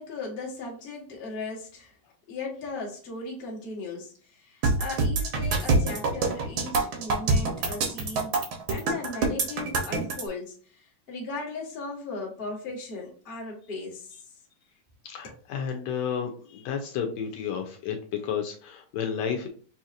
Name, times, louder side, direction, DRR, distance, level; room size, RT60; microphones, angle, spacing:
voice 1, 0.0-2.0 2.3-8.4 8.7-14.4 15.2-15.3, left 3 dB, 45° left, 0.6 m, -37 dB
sound 1, 4.6-10.2, right 3 dB, 80° right, 1.1 m, -25 dB
voice 2, 15.0-19.5, left 7 dB, 80° left, 1.7 m, -31 dB
6.3 x 2.8 x 2.5 m
omnidirectional pair, 3.4 m